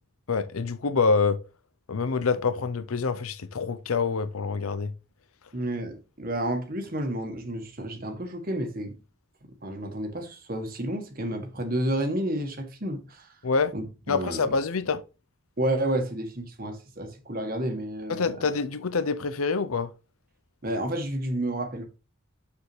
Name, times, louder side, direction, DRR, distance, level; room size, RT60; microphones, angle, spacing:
voice 1, 0.3-1.4 1.9-4.9 13.4-13.7 14.1-15.0 18.1-19.9, left 4 dB, 90° left, 0.7 m, -26 dB
voice 2, 5.5-8.9 9.6-13.3 13.7-14.5 15.6-18.4 20.6-21.9, right 1 dB, 45° right, 1.6 m, -30 dB
6.9 x 6.9 x 3.3 m
head